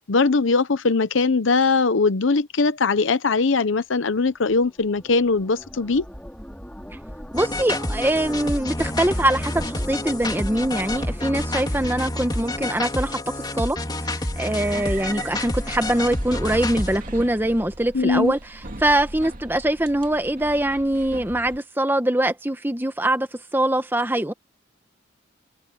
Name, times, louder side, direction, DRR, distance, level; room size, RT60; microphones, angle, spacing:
voice 1, 0.0-6.0 17.9-18.3, left 4 dB, 80° left, 0.8 m, -20 dB
sound 1, 4.3-13.5, equal, 5° left, 4.2 m, -39 dB
sound 2, 7.3-17.0, left 1 dB, 20° left, 3.6 m, -29 dB
voice 2, 7.3-13.2 13.6-13.8 14.4-18.4 18.8-24.3, right 1 dB, 10° right, 1.1 m, -23 dB
sound 3, 14.6-21.6, right 2 dB, 45° right, 2.3 m, -38 dB
head